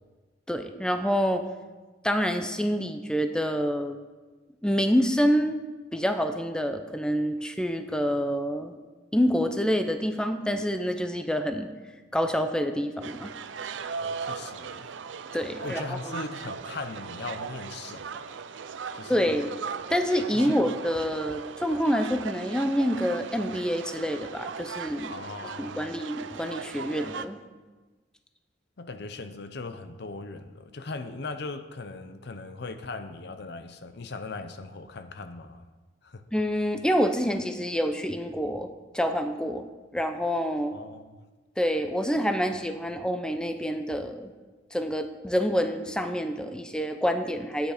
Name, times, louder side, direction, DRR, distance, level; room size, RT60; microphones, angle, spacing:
voice 1, 0.5-1.4 2.0-4.0 4.6-5.6 5.9-8.7 9.1-11.7 12.1-13.3 15.3-16.2 19.1-19.5 19.9-25.2 25.4-27.4 36.3-39.6 39.9-40.7 41.6-44.3 44.7-47.7, equal, 5° left, 7 dB, 0.5 m, -27 dB
sound 1, 13.0-27.3, right 5 dB, 85° right, 0.5 m, -38 dB
voice 2, 14.0-14.9 15.6-18.4 18.9-19.4 20.3-20.6 25.1-25.9 28.8-35.7 36.0-36.2 40.7-41.2, left 3 dB, 60° left, 10 dB, 0.7 m, -39 dB
11.0 x 8.9 x 5.0 m, 1.3 s
head